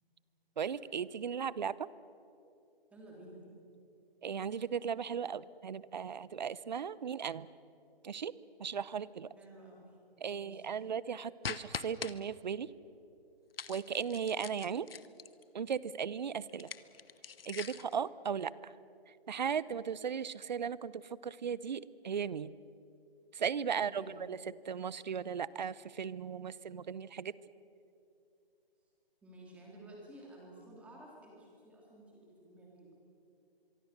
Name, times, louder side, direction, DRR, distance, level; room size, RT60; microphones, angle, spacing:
voice 1, 0.6-1.9 4.2-7.5 8.0-8.3 8.6-9.3 10.2-12.7 13.7-14.9 15.5-16.7 17.5-18.5 19.3-22.5 23.3-24.4 24.7-27.3, right 7 dB, 45° right, 19 dB, 0.7 m, -37 dB
voice 2, 2.9-3.4 9.4-9.8 10.3-10.7 23.7-24.2 29.2-32.9, right 1 dB, 5° right, -3 dB, 3.0 m, -53 dB
sound 1, 11.4-12.1 13.5-15.4 16.5-18.0, left 6 dB, 70° left, 1.1 m, -43 dB
24.0 x 24.0 x 6.6 m, 2.7 s
hypercardioid pair, 170°, 30 cm